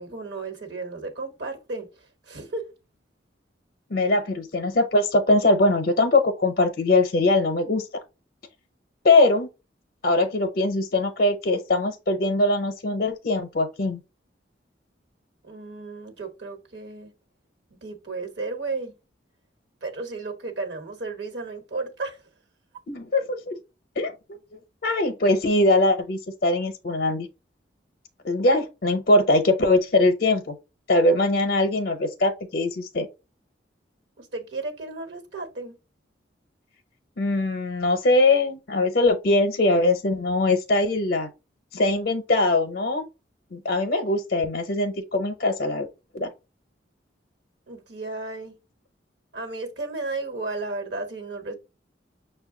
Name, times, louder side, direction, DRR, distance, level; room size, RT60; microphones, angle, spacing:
voice 1, 0.0-1.9 2.3-2.7 15.4-17.1 17.8-18.9 19.8-22.2 34.2-35.8 47.7-48.5 49.3-51.5, right 3 dB, 70° right, 1.2 m, -33 dB
voice 2, 3.9-7.9 9.0-9.5 10.0-14.0 22.9-23.6 24.0-24.1 24.8-27.3 28.2-30.5 30.9-33.1 37.2-41.3 41.7-43.0 43.5-45.9 46.1-46.3, left 2 dB, 55° left, 0.6 m, -21 dB
6.3 x 2.2 x 3.6 m
head